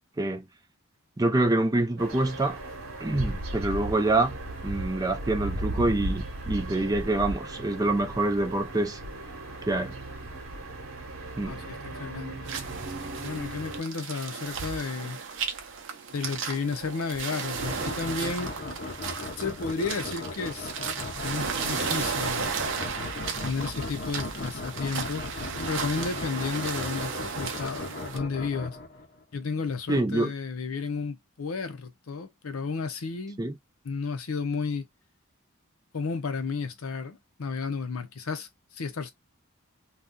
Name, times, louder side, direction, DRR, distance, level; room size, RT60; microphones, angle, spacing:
voice 1, 1.2-2.6 3.0-4.4 4.6-9.0 9.6-9.9 11.4-11.6 29.9-30.3 33.4-33.5, right 2 dB, 15° right, 0.5 m, -26 dB
sound 1, 2.0-13.8, right 1 dB, 75° right, 1.0 m, -36 dB
voice 2, 11.5-15.2 16.1-18.5 19.4-20.7 21.2-22.8 23.4-25.4 25.7-28.8 29.3-33.4 33.8-34.9 35.9-39.1, left 4 dB, 80° left, 0.6 m, -33 dB
sound 2, 12.4-28.2, right 6 dB, 60° right, 0.7 m, -35 dB
sound 3, 17.5-29.2, left 2 dB, 45° left, 0.7 m, -37 dB
2.6 x 2.3 x 3.6 m
head